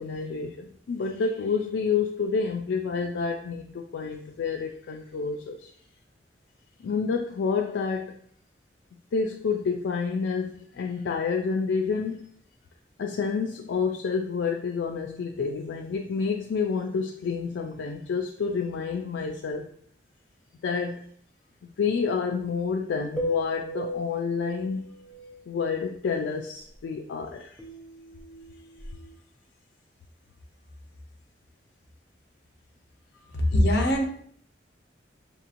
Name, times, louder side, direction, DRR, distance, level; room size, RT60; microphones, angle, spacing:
voice 1, 0.0-5.7 6.8-8.2 9.1-12.3 13.0-19.7 20.6-21.1 21.8-25.0 25.5-27.6, left 5 dB, 85° left, 2 dB, 0.3 m, -29 dB
sound 1, 23.2-25.4 27.6-29.1, equal, ahead, 0.6 m, -36 dB
voice 2, 33.3-34.0, left 1 dB, 70° left, 3 dB, 0.7 m, -21 dB
5.5 x 2.9 x 2.5 m, 0.63 s
head